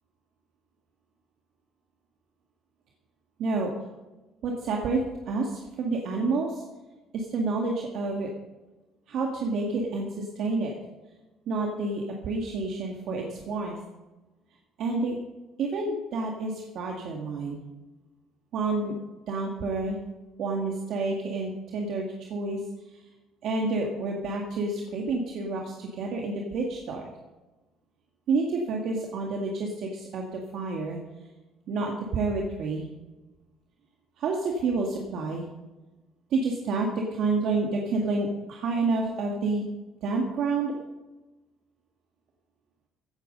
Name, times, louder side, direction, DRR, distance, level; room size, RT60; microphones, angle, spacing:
voice 1, 3.4-3.7 4.4-5.0 5.3-6.6 7.1-8.3 9.1-10.7 11.5-13.8 14.8-15.2 15.6-17.6 18.5-18.9 19.3-20.0 20.4-22.6 23.4-27.0 28.3-31.0 31.7-32.9 34.2-35.5 36.3-39.6 40.0-40.7, right 3 dB, 60° right, 0 dB, 2.0 m, -29 dB
15.5 x 9.6 x 5.4 m, 1.1 s
cardioid pair, 120°, 0 cm